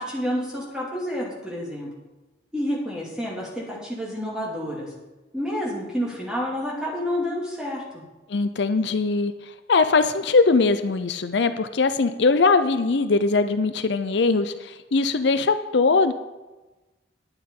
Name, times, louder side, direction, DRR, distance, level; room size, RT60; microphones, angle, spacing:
voice 1, 0.0-1.9 2.5-4.9 5.3-8.0, equal, 5° right, -5 dB, 2.6 m, -29 dB
voice 2, 8.3-9.3 9.7-16.1, left 4 dB, 65° left, 10 dB, 0.5 m, -21 dB
10.5 x 8.8 x 5.4 m, 1.1 s
head